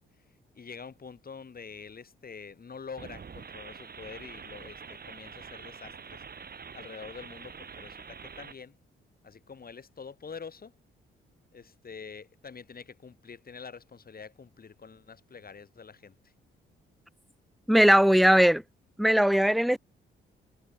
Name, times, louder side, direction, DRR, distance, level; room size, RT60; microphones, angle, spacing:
voice 1, 0.5-6.2 6.7-8.7 9.2-10.7 11.5-16.3, left 5 dB, 45° left, 4.8 m, -46 dB
sound 1, 3.0-8.6, right 6 dB, 45° right, 4.8 m, -45 dB
voice 2, 17.7-18.6 19.0-19.8, equal, ahead, 0.5 m, -19 dB
supercardioid pair, 55°, 21 cm